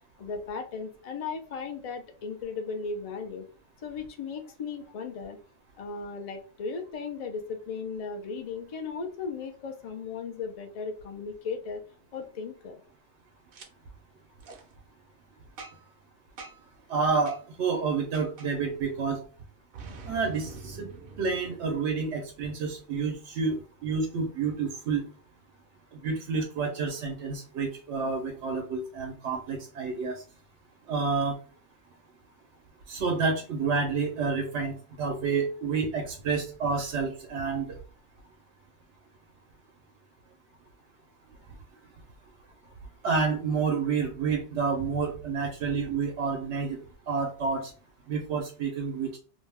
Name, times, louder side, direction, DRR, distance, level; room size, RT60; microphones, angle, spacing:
voice 1, 0.2-3.4 3.8-5.4 5.8-11.8 12.1-12.8, left 5 dB, 55° left, 6 dB, 0.4 m, -36 dB
Boom, 13.5-13.7 14.4-14.6 15.6-16.0 16.4-16.7 17.3-17.4 18.1-18.5 19.7-22.4, right 4 dB, 60° right, 0.7 m, -45 dB
voice 2, 16.9-19.2 20.0-20.9 21.2-25.0 25.9-30.2 30.9-31.3 32.9-37.8 43.0-46.8 47.1-47.7 48.1-49.1, right 5 dB, 90° right, 2 dB, 0.9 m, -29 dB
2.5 x 2.2 x 3.3 m, 0.38 s
omnidirectional pair, 1.1 m